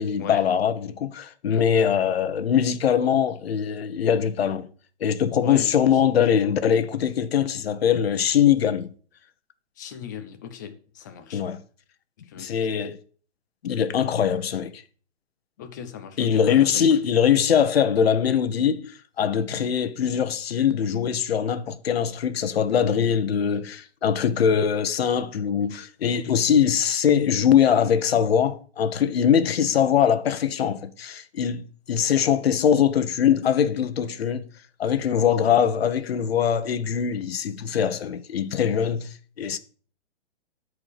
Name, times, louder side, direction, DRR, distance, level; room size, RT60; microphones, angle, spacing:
voice 1, 0.0-4.7 5.0-8.9 11.3-11.6 12.4-13.0 13.6-14.8 16.2-34.5 34.8-39.6, left 8 dB, 60° left, 1.1 m, -22 dB
voice 2, 5.4-6.1 9.8-11.4 12.2-12.5 15.6-16.8 24.4-24.6, left 8 dB, 15° left, 0.7 m, -38 dB
12.5 x 4.8 x 6.6 m
hypercardioid pair, 175°, 34 cm